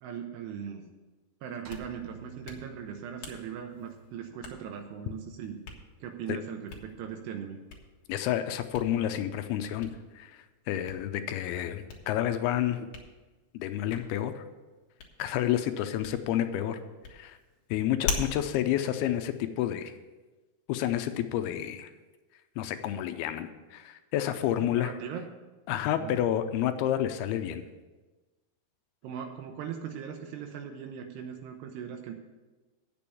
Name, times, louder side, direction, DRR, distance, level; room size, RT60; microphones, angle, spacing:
voice 1, 0.0-0.8 1.4-5.6 6.0-7.6 24.7-25.3 26.0-26.2 29.0-32.1, right 8 dB, 85° right, 4 dB, 2.9 m, -39 dB
Hands, 1.4-20.0, left 5 dB, 60° left, 2.3 m, -44 dB
sound 1, 1.7-6.1, right 4 dB, 65° right, 2.1 m, -54 dB
voice 2, 8.1-12.9 13.5-14.4 15.2-16.8 17.1-17.4 17.7-19.9 20.7-21.9 22.6-24.9 25.7-27.6, left 11 dB, 80° left, 9 dB, 2.5 m, -30 dB
8.7 x 6.8 x 8.4 m, 1.2 s
omnidirectional pair, 4.6 m